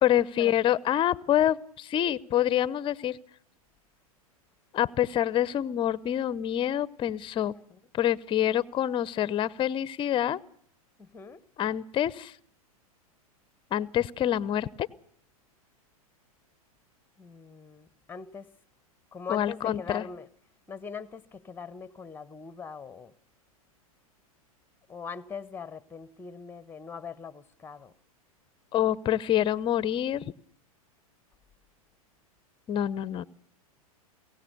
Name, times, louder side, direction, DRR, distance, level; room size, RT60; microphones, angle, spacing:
voice 1, 0.0-3.2 4.7-7.6 7.9-10.4 11.6-12.3 13.7-14.9 19.3-20.1 28.7-30.2 32.7-33.2, left 11 dB, 25° left, 0.8 m, -26 dB
voice 2, 11.0-11.4 17.2-18.5 19.1-20.3 20.7-23.1 24.9-27.9, left 5 dB, 10° left, 1.2 m, -41 dB
23.0 x 17.0 x 6.8 m
hypercardioid pair, 105°, 19 cm